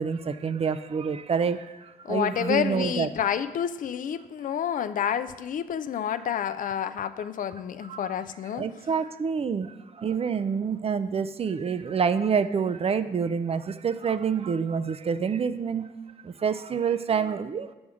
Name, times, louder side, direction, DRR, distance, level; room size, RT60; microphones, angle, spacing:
voice 1, 0.0-3.1 7.9-8.1 8.5-15.9 16.2-17.7, right 6 dB, 40° right, 12 dB, 0.4 m, -27 dB
voice 2, 2.0-8.7, left 9 dB, 60° left, 12 dB, 0.4 m, -29 dB
7.0 x 3.5 x 6.3 m, 1.1 s
supercardioid pair, 55°, 16 cm